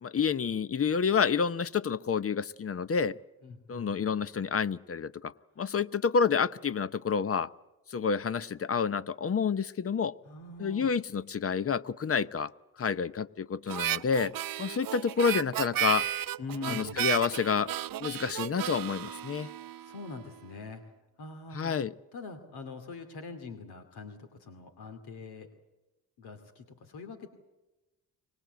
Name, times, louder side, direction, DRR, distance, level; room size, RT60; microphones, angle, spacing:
voice 1, 0.0-3.2 3.7-7.5 7.9-10.1 10.6-12.5 12.8-14.3 14.6-16.1 16.7-17.7 18.0-19.5 21.5-21.9, left 6 dB, 35° left, 16 dB, 0.7 m, -29 dB
voice 2, 3.4-4.1 10.2-10.9 16.4-17.1 19.8-20.8 21.2-21.8 22.1-25.5 26.2-27.3, left 4 dB, 80° left, 6 dB, 2.6 m, -43 dB
Harmonica, 13.7-20.2, right 11 dB, 60° right, 0.7 m, -34 dB
24.5 x 19.5 x 8.1 m, 1.0 s
cardioid pair, 80°, 38 cm